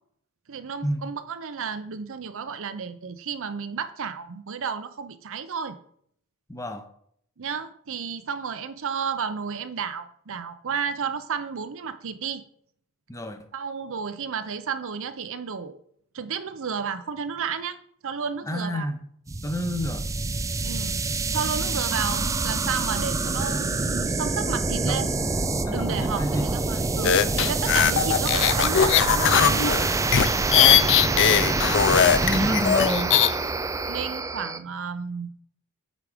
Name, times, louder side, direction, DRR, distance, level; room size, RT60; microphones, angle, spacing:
voice 1, 0.5-5.7 7.4-12.4 13.5-15.8 16.1-17.8 18.0-18.9 20.6-21.0 21.3-25.1 25.7-29.8 32.3-32.6 33.8-35.3, right 6 dB, 60° right, 11 dB, 0.6 m, -32 dB
voice 2, 6.5-6.9 13.1-13.5 18.4-19.0 19.4-20.0 24.8-25.0 25.7-26.5 30.5-30.9 32.2-33.2, left 1 dB, 15° left, 7 dB, 0.8 m, -28 dB
sound 1, 19.3-34.6, right 3 dB, 15° right, 0.4 m, -26 dB
sound 2, 27.0-33.3, left 9 dB, 55° left, 0.5 m, -20 dB
8.4 x 4.9 x 5.0 m, 0.67 s
head